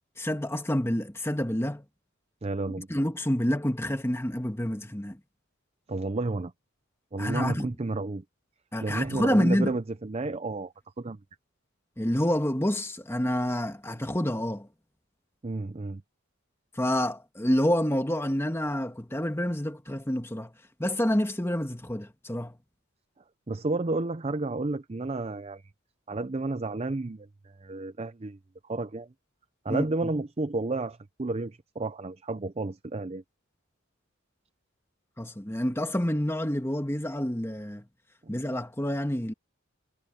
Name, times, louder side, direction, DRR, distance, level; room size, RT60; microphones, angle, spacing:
voice 1, 0.2-1.8 2.9-5.2 7.2-7.7 8.7-9.7 12.0-14.7 16.8-20.5 20.8-22.6 29.7-29.9 35.2-37.8 38.3-39.3, equal, 10° left, 1.6 m, -28 dB
voice 2, 2.4-2.9 5.9-6.5 7.1-8.2 8.8-11.2 15.4-16.0 23.5-25.6 26.1-27.3 27.6-28.4 28.7-29.1 29.6-33.2 38.2-38.3, right 2 dB, 30° right, 0.6 m, -31 dB
head